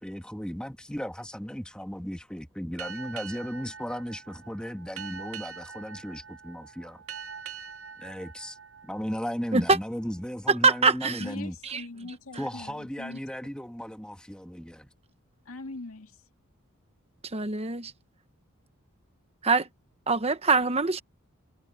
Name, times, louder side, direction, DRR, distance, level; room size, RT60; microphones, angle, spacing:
voice 1, 0.0-7.0 8.0-8.6 8.8-11.5 12.4-14.9, equal, 5° left, 1.4 m, -36 dB
Boat Water vehicle, 2.8-9.8, right 7 dB, 85° right, 1.8 m, -44 dB
voice 2, 10.6-11.2 11.7-11.8 17.3-17.9 19.4-19.7 20.1-21.0, right 4 dB, 30° right, 1.2 m, -23 dB
voice 3, 11.2-13.2 15.5-16.2, left 2 dB, 80° left, 2.2 m, -41 dB
head